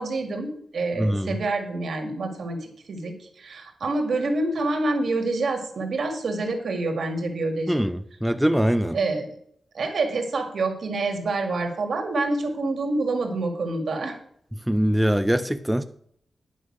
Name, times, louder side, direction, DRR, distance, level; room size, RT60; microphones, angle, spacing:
voice 1, 0.0-7.8 8.9-9.3 9.7-14.2, right 2 dB, 65° right, 2.0 m, -27 dB
voice 2, 1.0-1.4 7.7-9.0 14.5-15.8, equal, 5° right, 0.4 m, -23 dB
10.5 x 5.5 x 6.0 m
wide cardioid pair, 130°, 0 cm